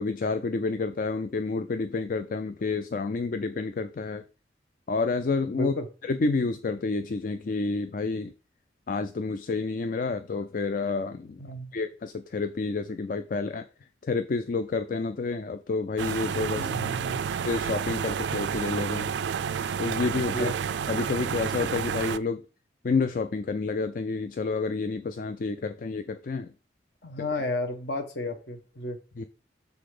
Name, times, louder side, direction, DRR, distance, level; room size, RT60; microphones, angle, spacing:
voice 1, 0.0-4.2 4.9-5.7 6.0-8.3 8.9-11.4 11.7-13.6 14.0-16.7 17.4-19.1 19.8-20.5 20.9-22.4 22.8-26.5 29.2-29.3, left 4 dB, 50° left, 9 dB, 0.4 m, -29 dB
voice 2, 5.5-5.9 11.4-11.7 16.5-17.2 20.3-20.5 27.0-29.0, left 1 dB, 65° left, 6 dB, 1.2 m, -32 dB
sound 1, 16.0-22.2, right 7 dB, 70° right, 0.3 m, -30 dB
6.8 x 4.0 x 4.9 m, 0.33 s
head